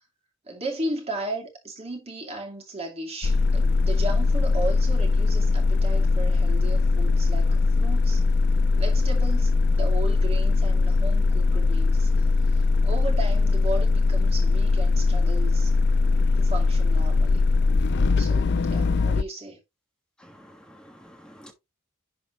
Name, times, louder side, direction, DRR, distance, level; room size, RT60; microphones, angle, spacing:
voice 1, 0.4-8.2 8.7-15.7 16.4-17.5 18.2-19.6, right 2 dB, 30° right, 2.5 m, -35 dB
sound 1, 3.2-19.2, left 3 dB, 55° left, 0.5 m, -21 dB
voice 2, 20.2-21.5, equal, 5° left, 1.4 m, -49 dB
11.0 x 4.2 x 3.0 m
head